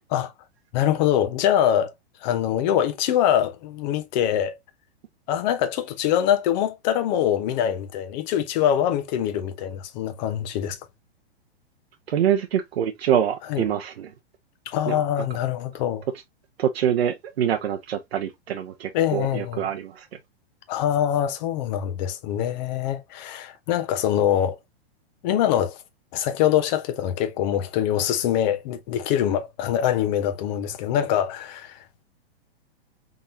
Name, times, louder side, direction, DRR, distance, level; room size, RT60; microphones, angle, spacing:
voice 1, 0.7-1.9 2.2-4.5 5.3-10.8 13.5-13.6 14.7-16.0 18.9-19.7 20.7-24.6 25.2-25.8 26.1-31.8, left 10 dB, 45° left, 1.0 m, -24 dB
voice 2, 12.1-14.1 14.9-15.0 16.6-20.1, right 9 dB, 80° right, 0.8 m, -25 dB
3.9 x 3.7 x 2.7 m
hypercardioid pair, 135°, 31 cm